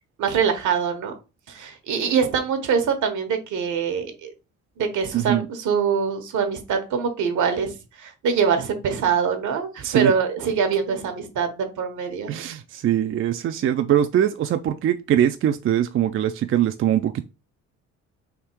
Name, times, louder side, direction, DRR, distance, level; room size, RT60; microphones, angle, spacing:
voice 1, 0.2-1.1 1.5-4.3 4.8-12.3, right 6 dB, 75° right, 1.1 m, -24 dB
voice 2, 5.1-5.5 9.8-10.1 12.3-17.2, right 10 dB, 45° right, 0.4 m, -22 dB
3.6 x 2.8 x 4.4 m
cardioid pair, 90°, 30 cm